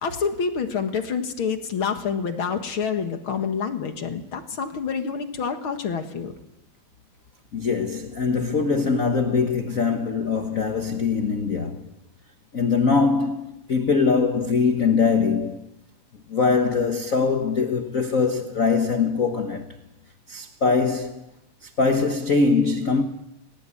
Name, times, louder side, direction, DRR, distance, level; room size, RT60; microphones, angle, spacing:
voice 1, 0.0-6.3, left 6 dB, 50° left, 2.1 m, -27 dB
voice 2, 7.5-11.8 12.5-15.6 16.3-19.6 20.3-21.2 21.8-23.0, left 4 dB, 85° left, 0.7 m, -22 dB
20.0 x 20.0 x 8.6 m
omnidirectional pair, 3.5 m